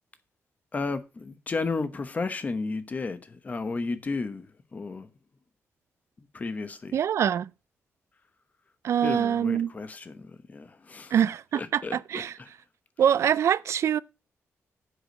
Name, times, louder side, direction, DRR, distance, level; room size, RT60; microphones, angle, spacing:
voice 1, 0.7-5.1 6.3-7.0 9.0-11.2 11.5-12.5, left 3 dB, 30° left, 0.9 m, -33 dB
voice 2, 6.9-7.5 8.8-9.7 11.1-12.3 13.0-14.0, right 9 dB, 60° right, 0.4 m, -24 dB
7.8 x 4.9 x 6.4 m
wide cardioid pair, 135°, 5 cm